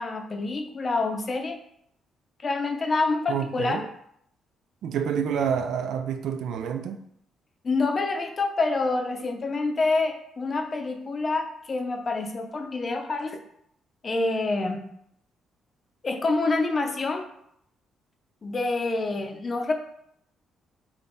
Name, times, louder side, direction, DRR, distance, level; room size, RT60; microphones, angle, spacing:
voice 1, 0.0-1.6 2.4-3.8 7.6-13.4 14.0-14.8 16.0-17.2 18.4-19.7, left 3 dB, 35° left, 4 dB, 0.5 m, -27 dB
voice 2, 3.3-3.9 4.8-7.0, right 7 dB, 75° right, 7 dB, 0.3 m, -28 dB
3.5 x 2.2 x 3.9 m, 0.70 s
cardioid pair, 90°, 0 cm